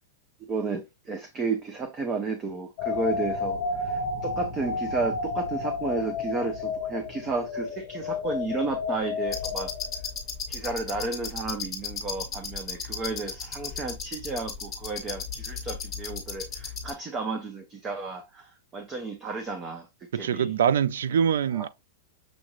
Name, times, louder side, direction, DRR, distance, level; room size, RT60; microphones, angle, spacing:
voice 1, 0.4-3.6 3.8-9.7 10.5-19.9 20.1-20.5 21.5-21.7, right 3 dB, 15° right, 0.5 m, -32 dB
sound 1, 2.8-10.1, left 4 dB, 40° left, 0.8 m, -31 dB
sound 2, 9.3-16.9, left 5 dB, 10° left, 1.1 m, -36 dB
voice 2, 20.1-21.7, right 8 dB, 90° right, 0.3 m, -24 dB
6.2 x 2.5 x 2.9 m
supercardioid pair, 175°, 0 cm